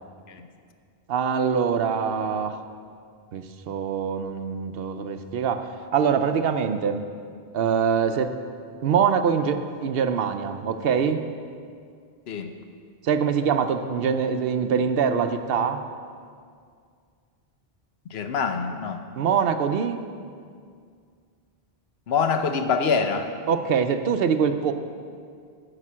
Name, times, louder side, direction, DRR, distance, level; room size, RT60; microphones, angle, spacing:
voice 1, 1.1-2.5 3.3-5.6 5.9-7.0 7.5-8.3 8.8-11.2 13.0-15.8 19.2-20.0 23.5-24.7, right 7 dB, 70° right, 9 dB, 0.8 m, -24 dB
voice 2, 18.1-19.0 22.1-23.3, left 5 dB, 80° left, 7 dB, 1.0 m, -25 dB
11.0 x 5.0 x 7.3 m, 2.2 s
omnidirectional pair, 1.1 m